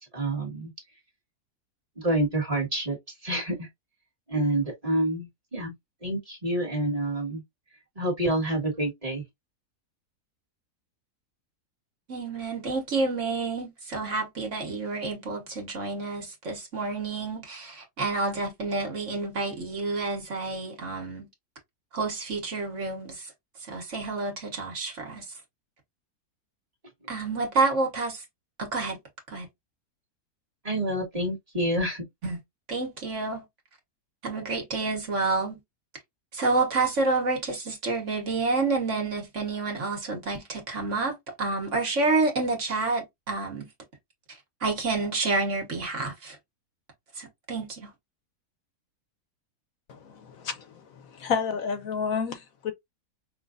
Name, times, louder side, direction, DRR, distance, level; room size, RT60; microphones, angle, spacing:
voice 1, 0.1-0.7 2.0-3.0 3.2-3.7 4.3-5.7 6.0-7.4 7.9-9.2 30.6-32.1, right 1 dB, 25° right, 1.6 m, -28 dB
voice 2, 12.1-21.3 21.9-23.3 23.7-25.2 27.1-28.2 28.6-29.0 29.3-29.5 32.2-32.4 32.7-33.4 34.2-35.6 36.3-43.7 44.6-46.4 47.2-47.9, right 3 dB, 50° right, 1.6 m, -29 dB
voice 3, 49.9-50.6 51.1-52.7, left 6 dB, 70° left, 1.0 m, -30 dB
5.7 x 2.5 x 2.5 m
omnidirectional pair, 1.7 m